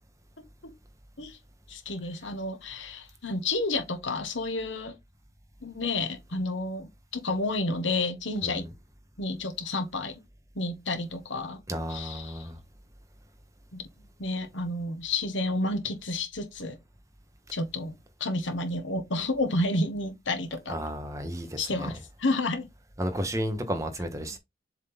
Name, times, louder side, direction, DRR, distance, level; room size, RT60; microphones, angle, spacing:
voice 1, 1.7-4.9 5.6-8.6 9.2-10.1 10.5-11.6 11.9-12.5 13.7-13.8 14.2-16.8 17.5-17.9 18.2-20.8 21.6-22.7, left 2 dB, 80° left, 1.4 m, -30 dB
voice 2, 8.4-8.7 11.7-12.6 20.7-21.9 23.0-24.4, equal, 15° right, 1.2 m, -33 dB
7.4 x 3.8 x 3.7 m
head